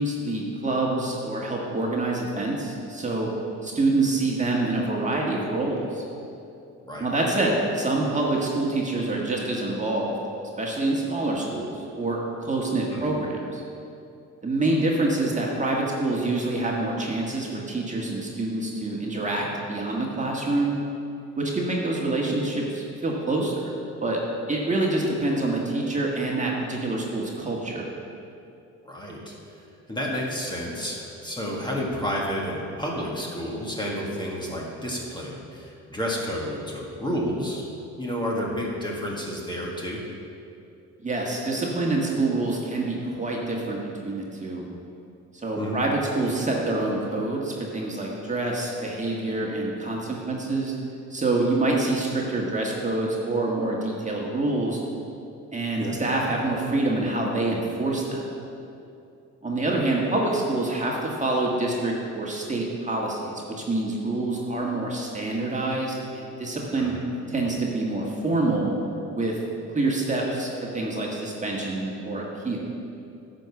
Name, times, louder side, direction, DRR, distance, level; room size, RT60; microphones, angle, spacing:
voice 1, 0.0-3.3 3.6-6.0 7.0-10.1 10.4-13.6 14.4-20.8 21.4-23.7 24.0-24.2 24.5-27.9 41.0-44.7 45.3-50.7 51.1-54.8 55.5-58.3 59.4-66.9 67.3-68.7 69.1-69.4 69.7-72.6, right 2 dB, 25° right, -2 dB, 1.6 m, -26 dB
voice 2, 28.8-29.4 29.9-37.7 38.0-40.0 45.6-45.8 55.8-56.0 66.8-67.1, equal, 15° left, -3 dB, 1.8 m, -30 dB
10.0 x 5.3 x 7.1 m, 2.7 s
cardioid pair, 90°, 30 cm